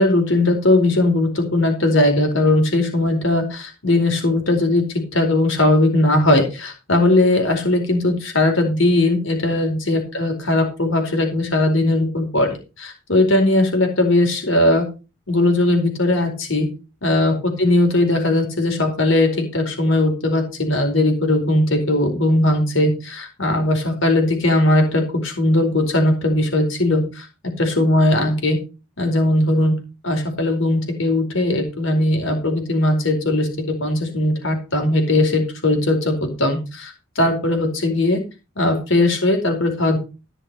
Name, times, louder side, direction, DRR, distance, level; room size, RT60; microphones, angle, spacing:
voice 1, 0.0-4.8 5.1-12.5 12.8-14.8 15.3-16.7 17.0-27.3 27.6-28.6 29.0-29.7 30.0-38.2 38.6-40.0, left 1 dB, 70° left, 4 dB, 4.6 m, -19 dB
15.0 x 6.4 x 5.5 m, 0.31 s
head